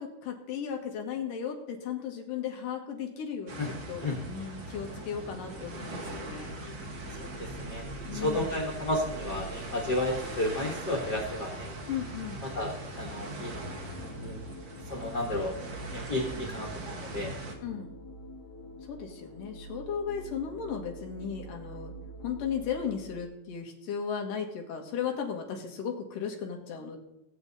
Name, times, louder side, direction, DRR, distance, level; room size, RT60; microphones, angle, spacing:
voice 1, 0.0-6.5 8.1-8.5 11.9-12.4 17.6-17.9 18.9-21.9 22.2-27.0, left 7 dB, 60° left, 2 dB, 3.0 m, -36 dB
sound 1, 3.5-17.5, right 2 dB, 50° right, 1.4 m, -41 dB
sound 2, 5.3-23.2, right 2 dB, 35° left, 2.0 m, -46 dB
voice 2, 8.1-11.7 12.4-13.6 13.9-14.4 14.9-15.5 15.9-17.3, left 1 dB, 85° left, 0 dB, 0.9 m, -32 dB
19.0 x 8.0 x 4.1 m, 0.85 s
omnidirectional pair, 4.6 m